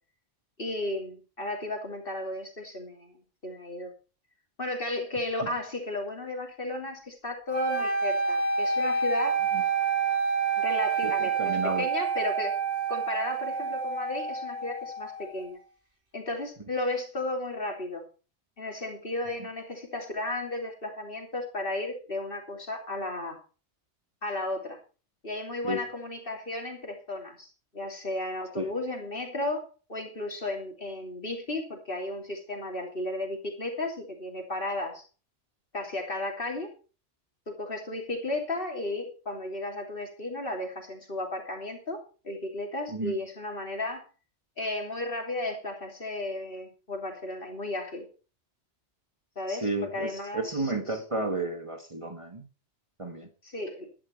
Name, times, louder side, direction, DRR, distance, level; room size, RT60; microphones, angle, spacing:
voice 1, 0.6-3.9 4.6-9.4 10.6-12.5 12.9-15.6 16.1-18.0 18.6-23.4 24.2-24.8 25.2-35.1 35.7-36.7 37.5-44.0 44.6-48.1 49.3-51.0 53.4-53.9, left 2 dB, 50° left, 2 dB, 3.4 m, -34 dB
sound 1, 7.5-15.6, right 5 dB, 75° right, 5.8 m, -28 dB
voice 2, 11.0-11.8 25.6-25.8 28.6-28.7 42.9-43.2 49.5-52.5 53.0-53.3, right 2 dB, 25° right, 5 dB, 1.6 m, -32 dB
12.0 x 10.5 x 4.6 m, 0.37 s
omnidirectional pair, 1.2 m